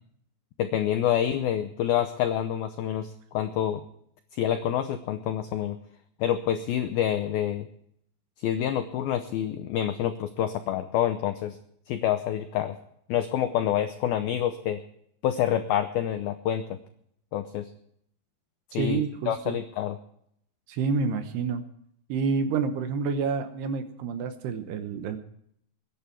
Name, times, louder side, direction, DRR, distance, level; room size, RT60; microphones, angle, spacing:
voice 1, 0.6-3.8 4.3-5.8 6.2-7.7 8.4-11.6 11.9-12.8 13.1-14.8 15.2-16.8 17.3-17.7 18.7-20.0, left 10 dB, 85° left, 8 dB, 2.1 m, -27 dB
voice 2, 18.7-19.6 20.7-21.6 22.1-25.2, right 5 dB, 70° right, 8 dB, 2.8 m, -28 dB
21.5 x 11.0 x 4.6 m, 0.70 s
omnidirectional pair, 5.4 m